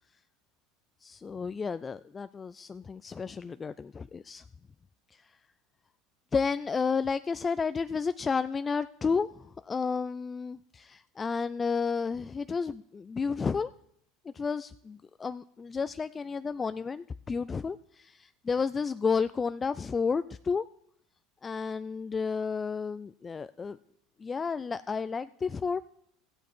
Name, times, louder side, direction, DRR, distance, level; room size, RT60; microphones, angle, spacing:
voice 1, 1.0-4.4 5.1-5.4 6.3-13.7 14.2-20.6 21.4-23.8 24.2-25.8, left 5 dB, 25° left, 13 dB, 0.3 m, -32 dB
14.5 x 8.3 x 4.5 m, 0.69 s
hypercardioid pair, 85°, 0 cm